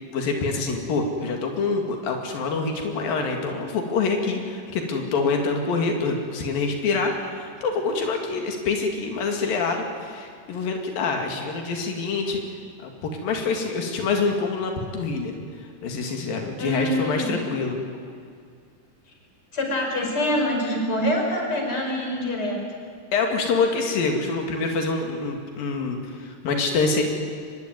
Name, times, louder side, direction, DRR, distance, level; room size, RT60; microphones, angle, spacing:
voice 1, 0.1-12.4 12.8-15.4 15.8-17.8 23.1-27.0, left 4 dB, 90° left, 3 dB, 4.1 m, -26 dB
voice 2, 16.6-17.3 19.5-22.6, left 1 dB, 30° left, 1 dB, 5.2 m, -25 dB
24.0 x 21.0 x 9.4 m, 2.2 s
omnidirectional pair, 3.9 m